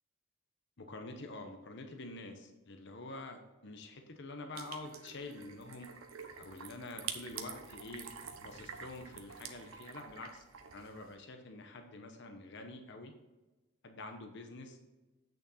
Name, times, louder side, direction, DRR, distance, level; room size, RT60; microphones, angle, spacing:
voice 1, 0.8-5.9 6.4-8.1 8.4-10.4 10.7-13.1 13.8-14.8, left 2 dB, 55° left, 5 dB, 1.0 m, -47 dB
sound 1, 4.5-11.1, right 7 dB, 85° right, 0.9 m, -47 dB
8.5 x 6.6 x 4.2 m, 1.1 s
head